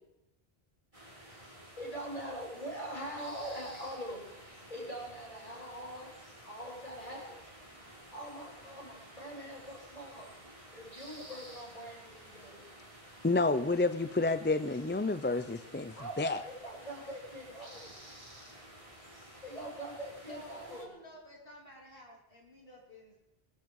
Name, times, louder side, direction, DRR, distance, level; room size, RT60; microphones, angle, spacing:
Bear James Park, 0.9-20.8, right 1 dB, 35° right, 3.7 m, -53 dB
voice 1, 1.8-6.1 6.4-7.4 8.1-10.3 10.7-12.7 16.0-17.9 19.4-20.9, right 1 dB, 35° left, -4 dB, 7.4 m, -43 dB
voice 2, 13.2-16.4, left 3 dB, 15° left, 12 dB, 0.4 m, -30 dB
voice 3, 20.3-23.2, equal, 65° left, -2 dB, 3.6 m, -52 dB
23.0 x 13.0 x 4.8 m, 0.89 s
omnidirectional pair, 1.0 m